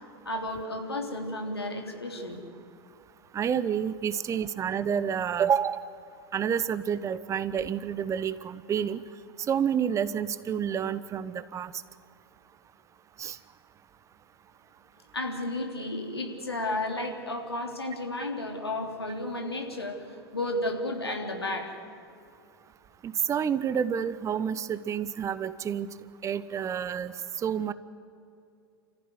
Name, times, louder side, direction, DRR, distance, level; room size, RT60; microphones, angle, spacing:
voice 1, 0.2-2.4 15.1-20.1 20.3-21.8, left 1 dB, 85° left, 2 dB, 3.4 m, -32 dB
voice 2, 3.3-5.8 6.3-9.0 9.5-11.7 13.2-13.4 23.0-25.9 26.2-27.7, right 8 dB, 25° right, 15 dB, 0.9 m, -29 dB
29.0 x 15.0 x 9.7 m, 2.5 s
figure-of-eight pair, 95°, 13 cm